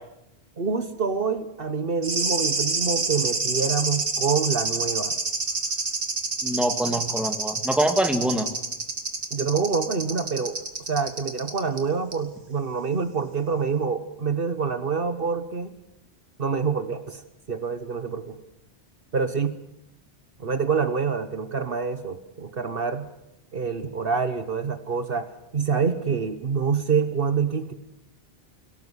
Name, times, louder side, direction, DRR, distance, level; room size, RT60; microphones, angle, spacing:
voice 1, 0.6-5.1 9.3-10.6 10.9-15.7 16.4-17.2 17.5-18.4 19.1-19.5 20.4-23.1 23.5-25.3 25.5-27.7, right 5 dB, 60° right, 10 dB, 1.3 m, -26 dB
sound 1, 2.0-11.8 12.1-12.2, right 3 dB, 85° right, 2.2 m, -28 dB
voice 2, 6.4-8.5, right 1 dB, ahead, 5 dB, 2.0 m, -24 dB
24.0 x 17.5 x 8.0 m, 0.85 s
omnidirectional pair, 1.1 m